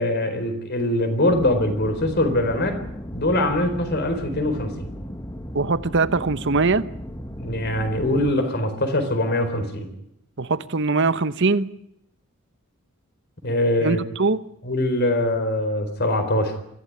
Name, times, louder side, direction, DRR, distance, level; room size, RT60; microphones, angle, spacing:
voice 1, 0.0-2.8 3.1-4.9 7.4-9.9 13.4-14.0 14.6-16.6, left 1 dB, 50° left, 8 dB, 4.2 m, -23 dB
sound 1, 1.3-8.3, equal, 15° left, 1.4 m, -36 dB
voice 2, 5.5-6.8 10.4-11.7 13.8-14.4, right 3 dB, 55° right, 14 dB, 1.0 m, -21 dB
24.0 x 15.0 x 9.7 m, 0.78 s
head